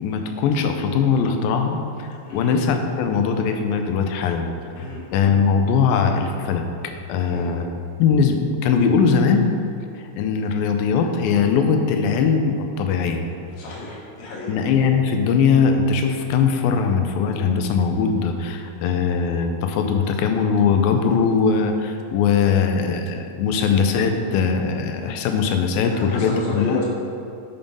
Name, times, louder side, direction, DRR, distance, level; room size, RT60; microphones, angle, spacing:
voice 1, 0.0-4.5 5.1-7.7 8.0-9.5 10.0-13.2 14.5-26.8, left 6 dB, 85° left, 5 dB, 2.4 m, -20 dB
voice 2, 13.6-14.6 25.9-26.9, left 2 dB, 70° left, -4 dB, 3.1 m, -32 dB
7.3 x 5.2 x 5.4 m, 2.6 s
omnidirectional pair, 4.1 m